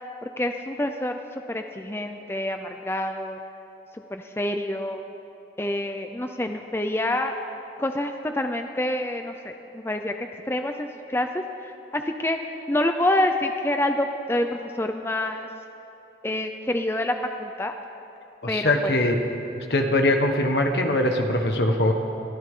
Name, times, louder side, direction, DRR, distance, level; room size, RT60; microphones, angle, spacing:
voice 1, 0.2-1.2 1.5-3.4 4.1-5.0 5.6-7.4 7.8-10.1 10.4-12.4 12.7-15.5 16.2-17.7 18.5-18.9, left 1 dB, 15° left, 5 dB, 0.5 m, -27 dB
voice 2, 18.4-19.2 19.7-21.9, left 1 dB, 70° left, 4 dB, 1.4 m, -22 dB
23.5 x 14.5 x 3.8 m, 2.9 s
head